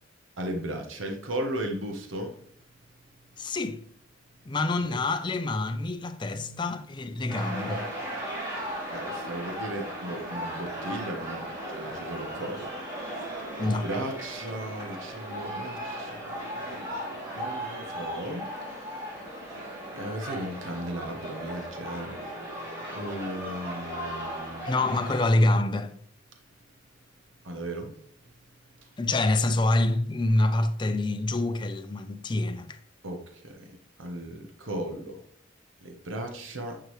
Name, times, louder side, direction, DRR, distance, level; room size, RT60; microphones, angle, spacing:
voice 1, 0.4-2.4 4.8-5.0 6.3-6.8 8.9-12.7 13.6-19.2 19.9-22.2 22.9-24.8 27.4-27.9 28.8-28.9 33.0-35.2 35.8-36.8, right 1 dB, 80° right, 1.1 m, -36 dB
voice 2, 3.4-3.8 4.5-7.9 13.6-13.9 24.6-25.9 29.0-32.8, left 2 dB, 25° left, 0.4 m, -26 dB
sound 1, 7.3-25.3, equal, 20° right, 2.8 m, -37 dB
9.5 x 6.0 x 3.2 m
head